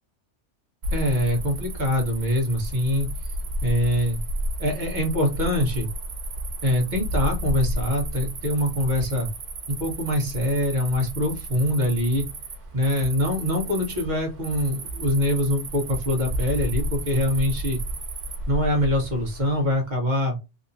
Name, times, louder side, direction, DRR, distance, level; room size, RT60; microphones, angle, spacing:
Cricket, 0.8-19.7, right 1 dB, 90° right, 1.2 m, -32 dB
voice 1, 0.9-3.1 3.6-4.2 4.6-5.9 6.6-9.3 9.7-12.2 12.7-17.8 18.5-20.4, equal, 40° right, 1 dB, 1.4 m, -24 dB
3.6 x 2.8 x 2.6 m, 0.26 s
omnidirectional pair, 1.2 m